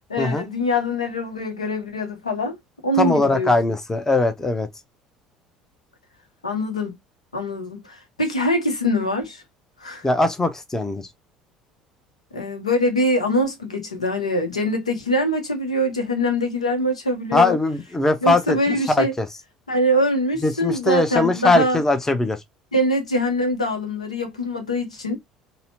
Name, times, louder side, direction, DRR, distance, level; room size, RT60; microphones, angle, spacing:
voice 1, 0.1-2.6 2.8-3.5 6.4-7.0 7.3-9.4 9.8-10.1 12.3-17.6 18.2-19.1 19.7-21.8 22.7-25.2, equal, 80° left, 0.7 m, -23 dB
voice 2, 3.0-4.7 10.0-11.0 17.3-19.3 20.4-22.4, left 2 dB, 15° left, 0.7 m, -20 dB
4.1 x 2.1 x 2.6 m
figure-of-eight pair, 60°, 3 cm